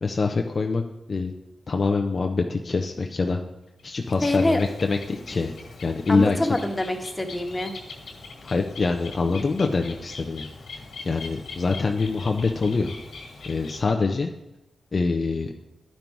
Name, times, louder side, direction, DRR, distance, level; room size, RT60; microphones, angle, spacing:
voice 1, 0.0-0.8 1.1-1.3 1.7-3.4 3.8-5.5 5.8-6.4 8.4-10.5 11.0-13.0 13.4-14.3 14.9-15.5, left 4 dB, 55° left, 3 dB, 0.6 m, -24 dB
Bird, 3.8-13.8, left 3 dB, 80° left, 1.8 m, -42 dB
voice 2, 4.2-4.6 6.1-7.7, left 1 dB, 20° left, 4 dB, 1.4 m, -25 dB
10.5 x 5.4 x 4.6 m, 0.97 s
cardioid pair, 50°, 0 cm